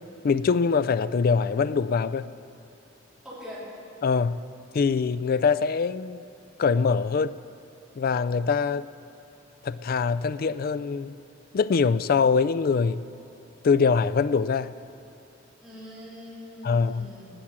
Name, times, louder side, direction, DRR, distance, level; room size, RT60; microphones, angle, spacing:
voice 1, 0.2-2.3 4.0-4.4 4.7-6.2 6.6-7.3 8.0-8.9 9.6-11.1 11.5-13.1 13.6-14.7 16.6-17.1, left 5 dB, 50° left, 0.4 m, -23 dB
voice 2, 3.2-3.7 15.6-17.3, equal, 5° right, 3.8 m, -42 dB
17.0 x 8.7 x 6.1 m
head